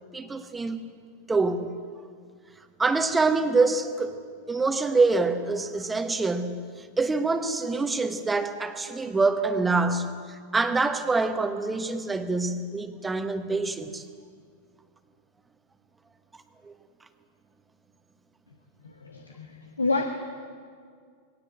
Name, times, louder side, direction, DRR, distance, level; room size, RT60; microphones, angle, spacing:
voice 1, 0.1-0.8 1.3-1.7 2.8-4.2 4.5-6.6 7.0-10.1 10.5-14.0, right 3 dB, 10° right, 8 dB, 1.4 m, -25 dB
voice 2, 18.8-20.0, left 3 dB, 75° left, 4 dB, 1.5 m, -29 dB
21.5 x 18.0 x 8.0 m, 2.1 s
figure-of-eight pair, 90°, 0 cm